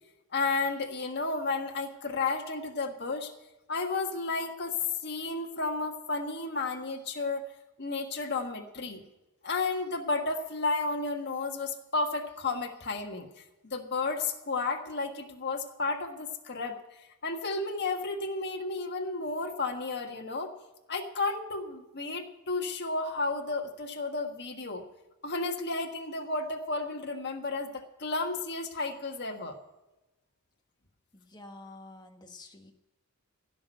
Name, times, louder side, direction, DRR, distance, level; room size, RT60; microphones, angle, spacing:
voice 1, 0.3-3.3 3.7-4.8 5.0-7.5 7.8-9.0 9.4-13.3 13.6-16.8 17.2-20.5 20.9-24.8 25.2-29.6, left 3 dB, 50° left, 2 dB, 1.6 m, -32 dB
voice 2, 31.1-32.7, left 2 dB, 20° left, 4 dB, 1.3 m, -49 dB
16.0 x 6.0 x 9.1 m, 1.0 s
head